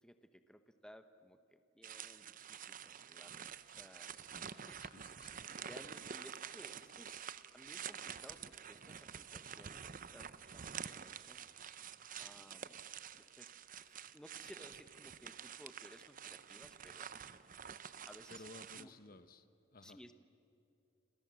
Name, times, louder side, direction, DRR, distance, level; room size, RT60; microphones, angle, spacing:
voice 1, 0.0-4.2 4.4-4.8 5.6-7.3 7.5-11.4 12.2-12.8 13.1-17.6 18.0-18.4 18.8-19.2 19.8-20.1, equal, 5° left, 9 dB, 0.9 m, -59 dB
sound 1, 1.8-18.8, right 8 dB, 45° right, 0.7 m, -49 dB
voice 2, 4.8-5.4 18.3-20.0, left 2 dB, 45° left, 12 dB, 1.0 m, -56 dB
29.0 x 27.0 x 7.6 m, 2.7 s
head